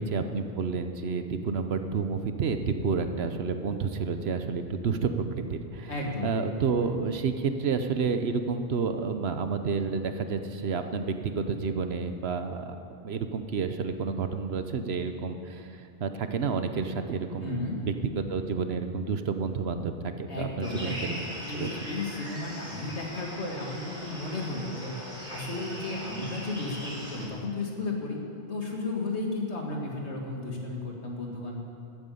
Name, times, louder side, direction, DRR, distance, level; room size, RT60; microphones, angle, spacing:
voice 1, 0.0-5.2 5.5-5.9 6.2-12.8 13.0-17.9 18.3-20.9 21.5-21.7, right 5 dB, 65° right, 8 dB, 1.0 m, -30 dB
voice 2, 5.9-6.4 17.4-17.8 20.3-21.2 21.5-25.0 25.3-28.2 28.5-31.6, left 2 dB, 70° left, -1 dB, 2.4 m, -34 dB
sound 1, 20.6-27.3, equal, 5° right, 3.7 m, -40 dB
13.5 x 9.3 x 8.5 m, 2.5 s
omnidirectional pair, 1.2 m